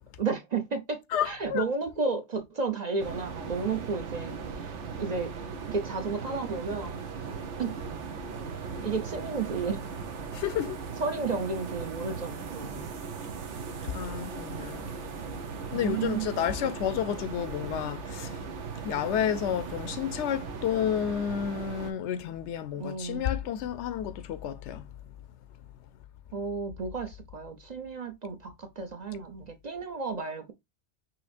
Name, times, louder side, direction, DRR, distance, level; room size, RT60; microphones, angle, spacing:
voice 1, 0.2-4.7 5.0-5.3 5.7-7.0 7.6-8.0 8.8-9.8 11.0-12.9 13.7-13.9 15.7-16.3 22.8-23.4 26.3-30.5, right 4 dB, 45° right, 0.6 m, -33 dB
voice 2, 1.1-1.7 10.3-10.8 13.8-14.9 15.7-18.4 18.8-24.9, left 9 dB, 80° left, 0.9 m, -31 dB
sound 1, 3.0-21.9, right 5 dB, 90° right, 1.2 m, -38 dB
5.8 x 3.0 x 2.4 m
omnidirectional pair, 1.2 m